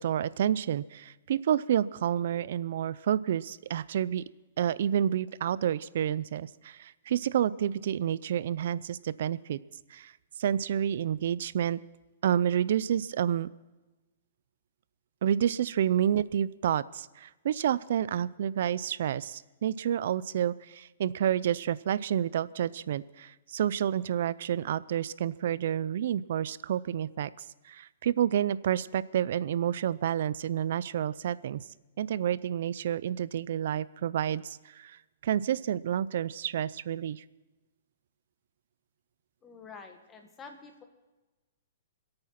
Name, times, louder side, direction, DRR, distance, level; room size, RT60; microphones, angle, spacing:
voice 1, 0.0-4.2 4.6-9.6 9.9-10.1 10.4-11.8 12.2-13.5 15.2-27.3 27.6-31.6 32.0-35.0 35.2-37.2, right 10 dB, 60° right, 19 dB, 0.5 m, -29 dB
voice 2, 39.4-40.8, left 5 dB, 15° left, 5 dB, 1.8 m, -48 dB
26.0 x 8.8 x 5.9 m, 1.1 s
hypercardioid pair, 160°, 0 cm